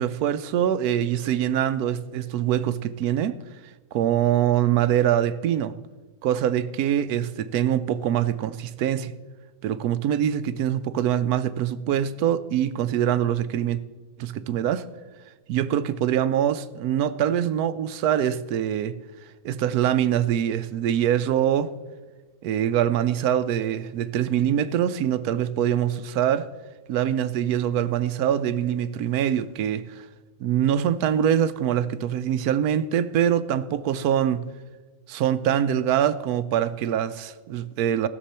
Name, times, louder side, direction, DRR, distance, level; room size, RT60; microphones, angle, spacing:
voice 1, 0.0-3.4 3.9-5.8 6.2-9.1 9.6-13.8 14.2-14.9 15.5-19.0 19.4-21.7 22.4-26.5 26.9-30.1 30.4-34.5 35.1-38.1, right 10 dB, 85° right, 1.1 m, -24 dB
19.0 x 6.9 x 4.3 m
omnidirectional pair, 1.6 m